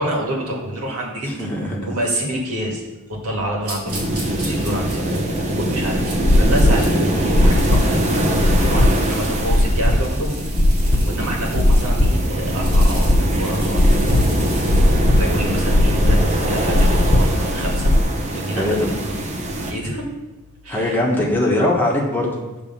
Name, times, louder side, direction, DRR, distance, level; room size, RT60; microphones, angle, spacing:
voice 1, 0.0-1.5 1.8-2.8 3.1-4.0 4.4-8.3 8.6-10.3 10.7-14.2 15.2-17.9 18.3-18.9 19.7-20.1 20.6-21.0, right 1 dB, 85° right, -1 dB, 2.1 m, -28 dB
voice 2, 1.2-1.8 15.9-16.2 18.5-18.9 20.7-22.4, left 1 dB, 10° left, -2 dB, 1.2 m, -21 dB
sound 1, 3.6-6.9 7.3-15.9, right 2 dB, 65° right, 2.9 m, -38 dB
sound 2, 3.9-19.7, right 1 dB, 30° right, 0.9 m, -23 dB
sound 3, 5.9-18.0, left 1 dB, 55° left, 1.0 m, -18 dB
10.0 x 3.4 x 7.1 m, 1.1 s
head